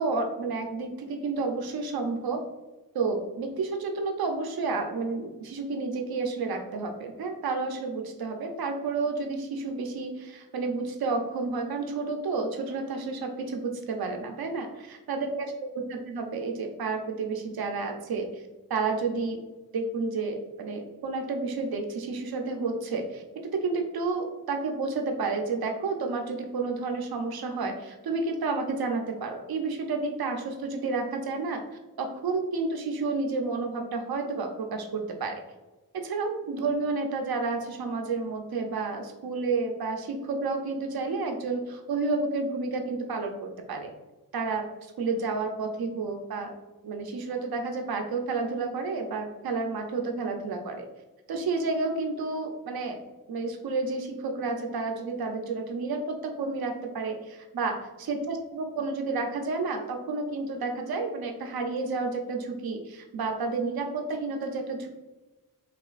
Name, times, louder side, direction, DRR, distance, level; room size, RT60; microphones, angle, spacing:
voice 1, 0.0-2.4 2.9-15.5 15.9-18.4 18.7-19.4 19.7-31.6 32.0-35.4 35.9-43.9 44.3-44.7 45.0-46.5 46.8-50.9 51.3-53.0 53.3-64.9, right 3 dB, 80° right, 4 dB, 0.8 m, -30 dB
5.0 x 3.2 x 2.5 m, 1.1 s
cardioid pair, 90°, 37 cm